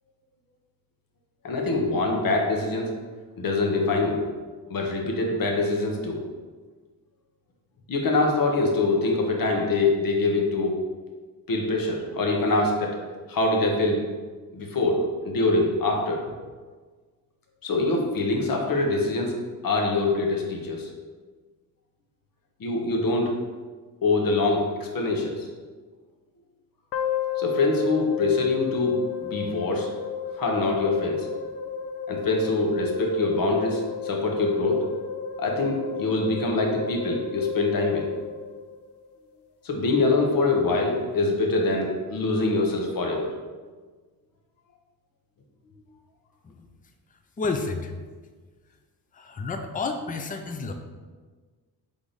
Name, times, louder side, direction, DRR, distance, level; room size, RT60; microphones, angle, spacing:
voice 1, 1.4-2.9 3.4-4.2 4.7-6.2 7.9-10.7 11.5-13.0 13.3-14.1 14.5-16.2 17.6-19.4 19.6-20.9 22.6-23.3 24.0-25.5 27.4-29.9 30.4-31.3 32.1-34.8 35.4-38.0 39.6-43.3, left 2 dB, 60° left, 1 dB, 1.0 m, -24 dB
sound 1, 26.9-39.1, left 7 dB, 85° left, 0.5 m, -33 dB
voice 2, 47.4-47.9 49.1-50.7, left 4 dB, 20° left, 6 dB, 0.4 m, -30 dB
3.6 x 3.5 x 3.9 m, 1.4 s
cardioid pair, 80°, 39 cm